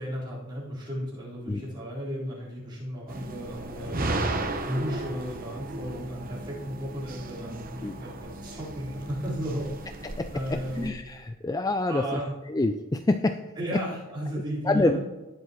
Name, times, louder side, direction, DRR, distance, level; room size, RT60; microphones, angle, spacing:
voice 1, 0.0-4.0 4.6-9.7 10.3-10.9 11.9-12.3 13.6-15.0, equal, 20° right, -8 dB, 4.3 m, -34 dB
sound 1, 3.1-10.9, right 2 dB, 45° right, 1.0 m, -35 dB
voice 2, 10.0-12.0 12.5-13.4 14.6-15.0, left 2 dB, 15° left, 7 dB, 0.4 m, -26 dB
18.5 x 7.5 x 3.1 m, 1.1 s
head